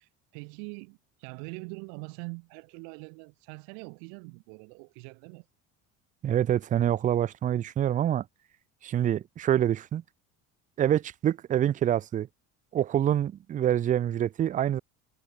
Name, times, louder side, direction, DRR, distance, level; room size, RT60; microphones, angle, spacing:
voice 1, 0.0-5.5, right 40 dB or more, 85° right, 6.3 m, -43 dB
voice 2, 6.2-8.2 8.8-10.0 10.8-12.3 12.7-14.8, right 11 dB, 25° right, 0.5 m, -26 dB
cardioid pair, 165°, 33 cm